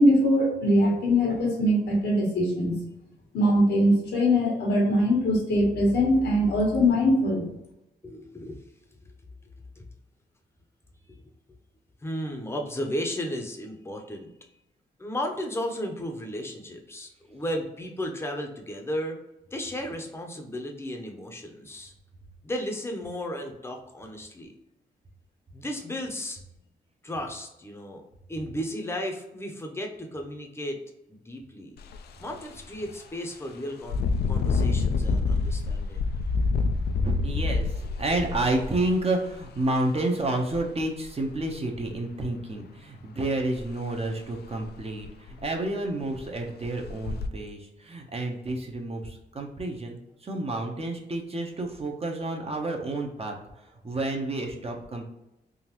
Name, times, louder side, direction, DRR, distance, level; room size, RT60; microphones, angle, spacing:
voice 1, 0.0-2.8 3.3-7.4, left 1 dB, 90° left, -1 dB, 1.2 m, -22 dB
voice 2, 8.0-8.6 9.8-9.9 12.0-14.3 15.0-19.2 19.5-21.9 22.4-24.5 25.5-26.4 27.0-28.0 28.3-30.8 31.1-31.8 32.2-36.0, equal, 15° left, 2 dB, 0.7 m, -34 dB
Engine, 31.8-32.0 32.5-32.6 33.8-39.6 40.5-40.6 41.0-41.8 43.6-43.7 44.1-44.2 44.6-44.7 45.0-45.5 46.1-46.2 46.8-47.3, left 4 dB, 65° left, 0.4 m, -27 dB
voice 3, 37.0-55.1, right 2 dB, 35° right, 1 dB, 0.9 m, -30 dB
3.8 x 2.6 x 3.0 m, 0.89 s
cardioid pair, 65°, 18 cm